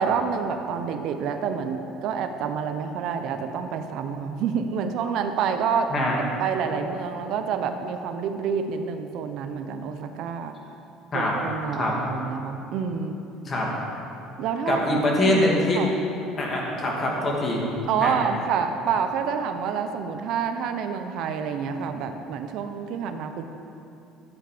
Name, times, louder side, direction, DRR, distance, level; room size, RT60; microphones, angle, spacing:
voice 1, 0.0-5.9 6.4-10.5 11.1-13.2 14.4-14.8 15.2-15.9 17.9-23.4, right 6 dB, 65° right, 7 dB, 0.8 m, -28 dB
voice 2, 14.7-15.8 16.4-17.6 18.0-18.1, left 1 dB, 30° left, -2 dB, 2.5 m, -23 dB
12.5 x 8.9 x 5.1 m, 2.7 s
cardioid pair, 120°, 0 cm